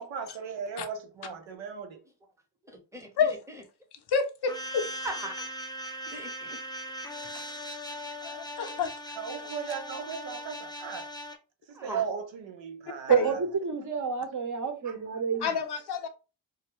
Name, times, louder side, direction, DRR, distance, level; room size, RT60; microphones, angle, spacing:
voice 1, 0.0-2.0 9.2-11.1 11.7-13.1, right 6 dB, 80° right, 0.6 m, -36 dB
voice 2, 2.7-3.1 5.0-5.5 6.1-6.6 11.7-12.0, right 1 dB, 5° right, 0.8 m, -39 dB
voice 3, 4.1-4.9 7.3-7.4 8.2-9.6 13.2-13.3 15.4-16.1, left 6 dB, 60° left, 0.6 m, -30 dB
sound 1, 4.5-11.4, equal, 10° left, 0.4 m, -39 dB
voice 4, 13.1-15.5, right 6 dB, 40° right, 0.7 m, -28 dB
2.2 x 2.0 x 2.9 m
cardioid pair, 45°, 45 cm